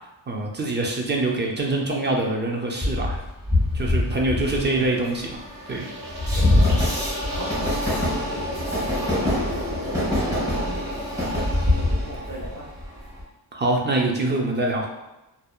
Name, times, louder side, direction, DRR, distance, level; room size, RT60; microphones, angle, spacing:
voice 1, 0.3-3.2 3.7-5.4 5.7-6.2 13.5-14.9, right 2 dB, 25° right, 0 dB, 0.5 m, -25 dB
Train, 2.8-13.2, left 1 dB, 10° right, 1.1 m, -24 dB
voice 2, 4.1-4.9 6.3-6.8 7.3-11.0 11.3-12.7, right 1 dB, 45° right, -5 dB, 1.1 m, -38 dB
sound 1, 5.7-7.6, right 1 dB, 60° right, 0.8 m, -41 dB
2.7 x 2.1 x 2.3 m, 0.98 s
cardioid pair, 75°, 44 cm